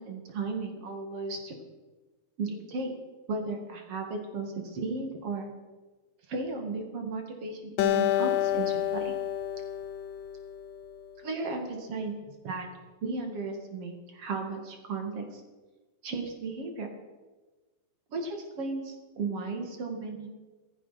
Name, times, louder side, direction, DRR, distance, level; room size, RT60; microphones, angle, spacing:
voice 1, 0.0-1.5 2.4-2.9 3.3-5.5 6.3-9.1 11.2-12.1 12.4-12.7 13.0-15.4 16.0-16.9 18.1-20.3, right 3 dB, 45° right, 4 dB, 2.3 m, -35 dB
Acoustic guitar, 7.8-11.1, left 11 dB, 80° left, 1.9 m, -29 dB
16.5 x 14.0 x 5.9 m, 1.2 s
omnidirectional pair, 4.9 m